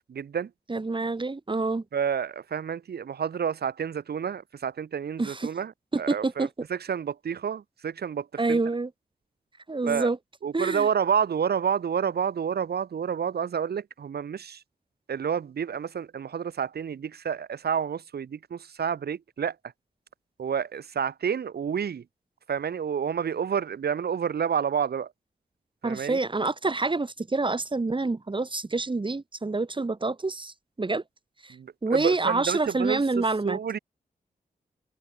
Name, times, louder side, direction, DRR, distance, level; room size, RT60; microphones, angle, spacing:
voice 1, 0.1-0.5 1.9-5.7 6.0-8.6 9.8-10.1 10.4-14.6 15.1-19.5 20.4-22.0 22.5-25.1 25.8-26.2 31.5-33.8, right 7 dB, 85° right, 4.2 m, -29 dB
voice 2, 0.7-1.8 5.2-5.5 5.9-6.7 8.4-8.9 9.7-10.2 10.5-10.9 25.8-31.0 31.4-31.6 31.8-33.6, right 3 dB, 30° right, 7.0 m, -27 dB
wide cardioid pair, 100°, 16 cm